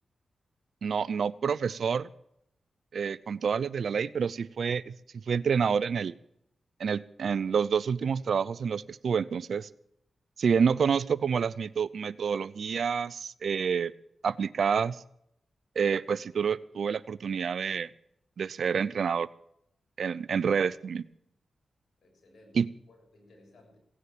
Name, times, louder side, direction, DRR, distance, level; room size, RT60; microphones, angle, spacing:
voice 1, 0.8-2.1 2.9-6.1 6.8-9.7 10.4-13.9 14.2-15.0 15.8-17.9 18.4-19.3 20.0-21.0 22.5-22.7, right 6 dB, 75° right, 19 dB, 0.6 m, -28 dB
voice 2, 22.0-23.8, left 1 dB, 70° left, 1 dB, 6.5 m, -58 dB
17.0 x 9.6 x 7.3 m, 0.75 s
cardioid pair, 50°, 0 cm